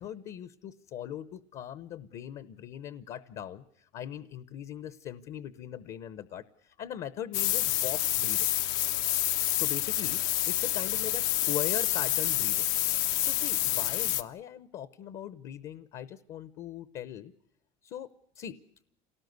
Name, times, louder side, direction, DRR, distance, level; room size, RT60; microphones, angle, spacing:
voice 1, 0.0-8.5 9.6-12.7 13.0-17.3 17.8-18.1 18.3-18.6, left 10 dB, 45° left, 15 dB, 0.8 m, -40 dB
sound 1, 7.3-14.2, left 14 dB, 85° left, 1.2 m, -28 dB
28.0 x 18.5 x 8.0 m, 0.78 s
cardioid pair, 165°, 16 cm